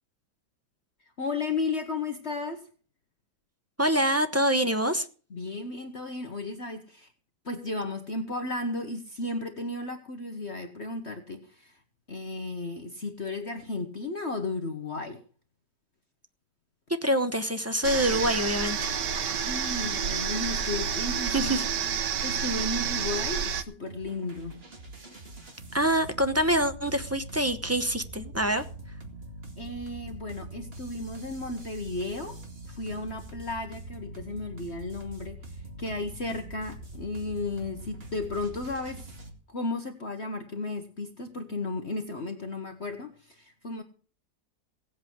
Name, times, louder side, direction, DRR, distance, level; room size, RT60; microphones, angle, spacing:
voice 1, 1.2-2.7 5.3-7.1 7.4-11.7 12.1-15.2 19.1-21.7 22.0-24.6 29.6-32.4 32.7-39.0 39.5-43.8, left 3 dB, 40° left, 1.5 m, -34 dB
voice 2, 3.8-5.1 17.0-18.9 21.3-21.6 25.7-28.6, equal, 15° right, 0.7 m, -25 dB
sound 1, 17.8-23.6, right 7 dB, 85° right, 1.6 m, -29 dB
sound 2, 23.9-39.3, right 2 dB, 35° right, 2.4 m, -43 dB
17.5 x 8.3 x 6.2 m
omnidirectional pair, 1.8 m